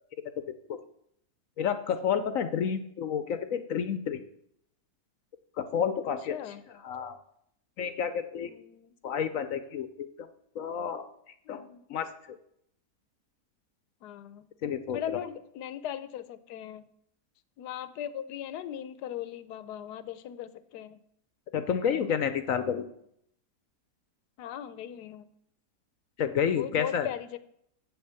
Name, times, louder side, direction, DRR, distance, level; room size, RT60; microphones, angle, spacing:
voice 1, 1.6-4.2 5.6-6.4 6.8-7.1 7.8-8.5 9.0-10.1 10.6-11.0 11.5-11.6 11.9-12.1 14.6-15.2 21.5-22.9 26.2-27.1, left 7 dB, 60° left, 10 dB, 1.0 m, -30 dB
voice 2, 6.3-6.6 8.4-8.9 11.5-11.8 14.0-14.5 14.9-16.8 17.6-21.0 24.4-25.3 26.5-27.4, left 10 dB, 80° left, 13 dB, 1.2 m, -39 dB
8.0 x 7.9 x 6.9 m, 0.72 s
omnidirectional pair, 1.8 m